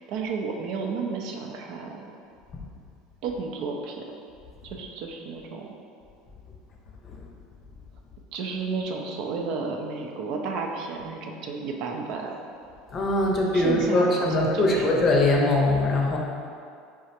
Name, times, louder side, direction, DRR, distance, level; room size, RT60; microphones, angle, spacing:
voice 1, 0.1-2.1 3.2-4.1 4.6-5.7 8.3-12.3 13.5-14.9, right 4 dB, 65° right, 1 dB, 0.4 m, -32 dB
voice 2, 12.9-16.2, left 2 dB, 40° left, -1 dB, 0.6 m, -22 dB
4.7 x 2.1 x 2.8 m, 2.4 s
hypercardioid pair, 90°, 0 cm